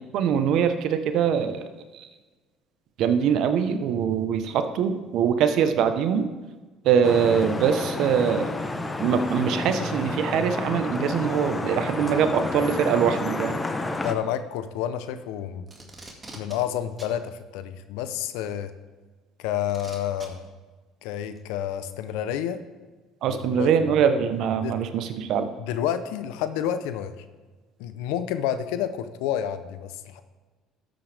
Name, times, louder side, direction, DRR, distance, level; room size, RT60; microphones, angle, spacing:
voice 1, 0.1-1.7 1.9-2.1 3.0-6.3 6.8-8.5 9.0-13.6 23.2-25.5, right 7 dB, 65° right, 9 dB, 0.9 m, -23 dB
Vehicle horn car horn honking / Traffic noise roadway noise, 7.0-14.1, left 2 dB, 20° left, 1.0 m, -30 dB
voice 2, 14.0-15.7 16.3-18.7 19.4-20.5 21.0-22.6 23.3-23.9 24.6-24.7 25.6-27.1 27.8-30.2, left 10 dB, 80° left, 12 dB, 0.7 m, -29 dB
Packing tape duct tape, 15.7-16.6 17.0-17.1 18.5-18.6 19.7-20.3 21.4-21.5, right 2 dB, 25° right, 2.1 m, -43 dB
13.0 x 7.9 x 3.4 m, 1.3 s
supercardioid pair, 75°, 0 cm